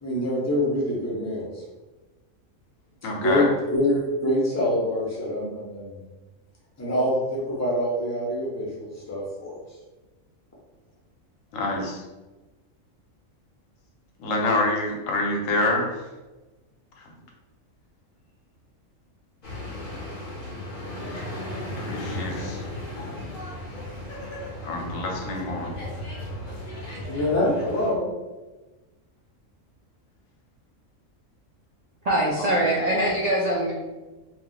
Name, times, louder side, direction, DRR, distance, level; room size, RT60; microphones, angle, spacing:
voice 1, 0.0-1.6 3.1-6.0 6.8-9.6 27.1-28.1, left 1 dB, 15° left, -5 dB, 0.6 m, -25 dB
voice 2, 3.0-3.5 5.4-5.5 11.5-12.0 14.2-15.9 17.0-17.1 21.8-22.6 24.6-25.7, left 2 dB, 80° left, 0 dB, 1.0 m, -26 dB
sound 1, 19.4-27.9, left 1 dB, 50° left, 0.8 m, -35 dB
voice 3, 32.0-33.7, right 1 dB, 85° right, -5 dB, 0.3 m, -23 dB
2.4 x 2.2 x 3.8 m, 1.2 s
omnidirectional pair, 1.4 m